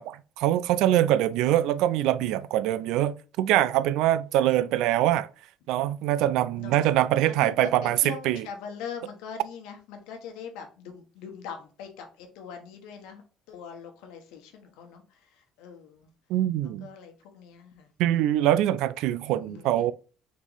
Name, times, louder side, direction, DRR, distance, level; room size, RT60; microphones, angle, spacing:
voice 1, 0.0-5.3 5.7-8.5 16.3-16.9 18.0-19.9, right 13 dB, 80° right, 0.3 m, -24 dB
voice 2, 6.5-6.9 7.2-13.2 13.5-16.1 16.8-18.2 19.3-19.9, left 6 dB, 90° left, 1.0 m, -42 dB
4.0 x 3.0 x 3.9 m
cardioid pair, 115°, 0 cm